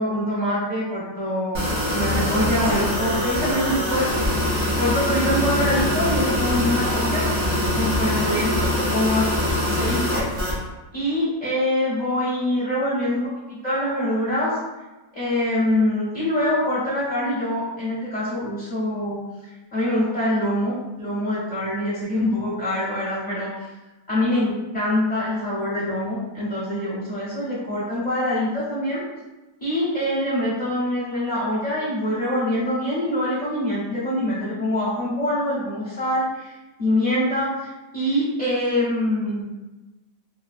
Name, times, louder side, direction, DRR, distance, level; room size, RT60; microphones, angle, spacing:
voice 1, 0.0-1.6 1.9-4.1 4.8-7.3 7.7-9.3 9.8-10.5 10.9-14.5 15.1-19.2 19.7-23.7 24.1-29.0 29.6-39.5, left 1 dB, 40° left, -8 dB, 0.6 m, -24 dB
sound 1, 1.5-10.6, left 1 dB, 50° right, 0.3 m, -23 dB
3.1 x 2.5 x 2.5 m, 1.1 s
omnidirectional pair, 1.7 m